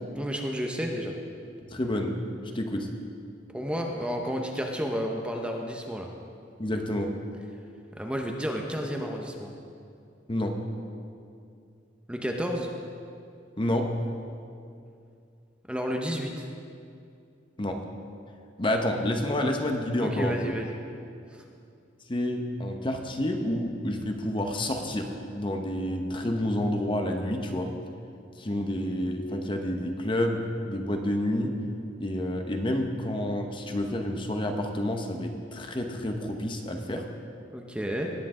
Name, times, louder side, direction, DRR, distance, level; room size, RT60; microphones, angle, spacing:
voice 1, 0.1-1.1 3.5-6.1 8.0-9.5 12.1-12.7 15.7-16.5 20.0-20.8 21.3-21.4 37.5-38.1, equal, 5° right, 1 dB, 0.7 m, -31 dB
voice 2, 1.6-2.2 2.5-2.9 6.6-7.1 10.3-10.5 13.6-13.9 17.6-17.8 18.6-20.5 22.1-27.7 28.4-30.4 30.6-31.5 32.0-37.0, left 1 dB, 25° left, 4 dB, 0.8 m, -29 dB
18.5 x 8.5 x 3.7 m, 2.5 s
head